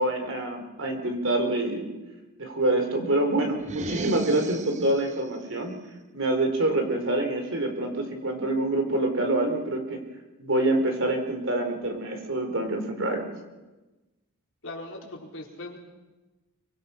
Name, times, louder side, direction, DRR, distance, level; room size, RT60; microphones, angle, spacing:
voice 1, 0.0-1.9 2.4-5.7 6.1-10.0 10.4-13.3, right 2 dB, 60° right, 5 dB, 4.0 m, -26 dB
sound 1, 3.6-5.2, right 2 dB, 35° right, 0.8 m, -34 dB
voice 2, 14.6-15.8, left 2 dB, 60° left, 0 dB, 4.1 m, -39 dB
26.0 x 24.0 x 5.8 m, 1.1 s
head